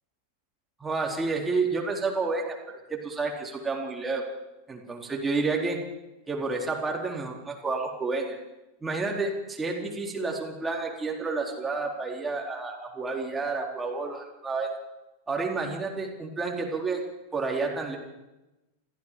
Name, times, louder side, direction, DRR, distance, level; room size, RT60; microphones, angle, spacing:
voice 1, 0.8-4.3 4.7-5.8 6.3-8.4 8.8-14.7 15.3-17.0 17.3-18.0, right 3 dB, 10° right, -1 dB, 4.2 m, -30 dB
29.0 x 15.0 x 7.6 m, 1.0 s
figure-of-eight pair, 90°, 0 cm